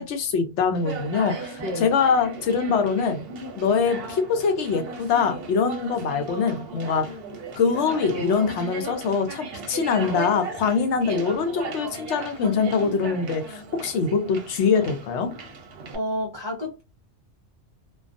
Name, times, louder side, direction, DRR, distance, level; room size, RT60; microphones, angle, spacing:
voice 1, 0.0-3.2 3.5-7.1 7.6-15.3, left 5 dB, 75° left, 0.9 m, -23 dB
Conversation, 0.7-15.9, right 3 dB, 60° right, 0.8 m, -37 dB
voice 2, 15.9-16.8, equal, 35° right, 0.4 m, -30 dB
2.3 x 2.2 x 2.5 m
omnidirectional pair, 1.2 m